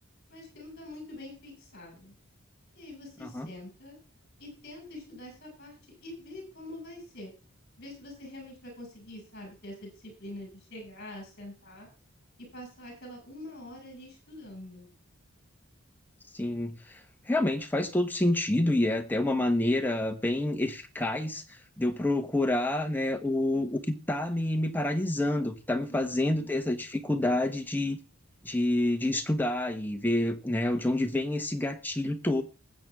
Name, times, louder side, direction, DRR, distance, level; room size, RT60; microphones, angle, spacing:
voice 1, 0.3-2.1 2.7-4.0 4.4-5.7 6.0-7.3 7.8-11.9 12.4-14.9 25.9-26.5, left 1 dB, 50° left, 6.4 m, -45 dB
voice 2, 16.3-17.0 17.3-28.0 28.4-32.4, left 1 dB, 10° left, 1.1 m, -28 dB
20.0 x 7.9 x 3.6 m
head